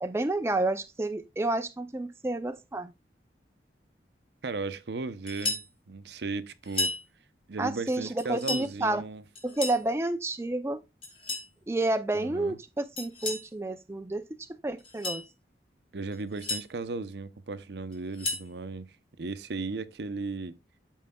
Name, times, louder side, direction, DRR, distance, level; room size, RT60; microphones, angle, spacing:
voice 1, 0.0-2.9 7.6-9.0 9.4-10.8 11.7-14.2 14.6-15.2, right 2 dB, 15° right, 0.4 m, -30 dB
voice 2, 4.4-6.9 7.5-9.2 12.1-12.6 15.9-18.9 19.2-20.6, right 3 dB, 75° right, 0.6 m, -36 dB
sound 1, 5.3-5.7 6.6-7.0 8.2-8.7 9.3-9.8 11.0-11.5 13.0-13.5 14.8-15.2 16.1-16.6 17.9-18.5, left 2 dB, 30° left, 2.0 m, -33 dB
13.0 x 4.7 x 2.2 m
head